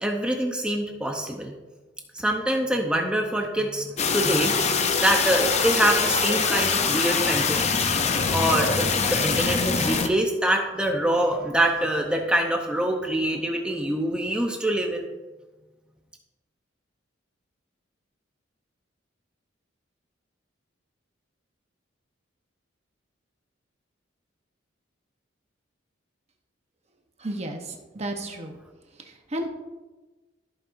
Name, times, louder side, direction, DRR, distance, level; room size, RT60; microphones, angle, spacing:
voice 1, 0.0-1.5 2.1-7.9 8.3-15.1, right 1 dB, 5° right, 1 dB, 0.7 m, -25 dB
sound 1, 4.0-10.1, left 5 dB, 35° left, 0.5 m, -23 dB
voice 2, 27.2-28.5 29.3-29.5, right 1 dB, 35° right, 3 dB, 0.9 m, -32 dB
14.0 x 5.4 x 2.6 m, 1.2 s
head